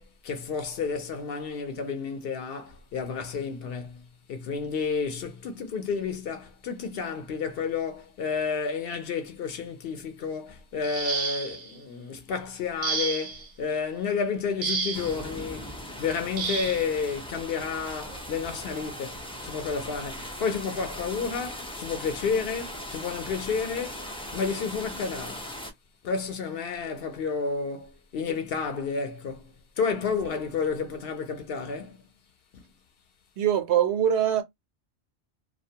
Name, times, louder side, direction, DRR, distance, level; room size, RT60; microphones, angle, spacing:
voice 1, 0.0-15.7 16.0-24.1 24.3-25.5 26.0-32.0 32.5-32.6, left 5 dB, 65° left, 0.7 m, -31 dB
sound 1, 10.8-11.7 12.8-13.5 14.6-15.2 16.4-16.8 18.0-18.2 18.7-18.9, right 5 dB, 50° right, 0.6 m, -31 dB
sound 2, 14.9-25.7, left 1 dB, 10° left, 0.3 m, -39 dB
voice 2, 33.4-34.4, right 10 dB, 80° right, 0.9 m, -23 dB
2.3 x 2.1 x 2.7 m
omnidirectional pair, 1.1 m